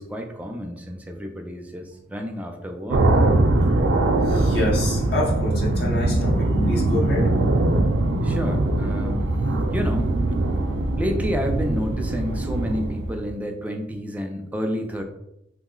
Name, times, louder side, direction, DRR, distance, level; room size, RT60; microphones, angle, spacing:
voice 1, 0.0-3.3 8.2-9.3 9.7-10.1 11.0-15.0, equal, 10° right, 3 dB, 0.3 m, -30 dB
sound 1, 2.9-13.3, right 2 dB, 85° right, 0.4 m, -22 dB
voice 2, 4.3-7.3, left 1 dB, 55° left, -3 dB, 0.7 m, -27 dB
2.9 x 2.0 x 3.7 m, 0.82 s
head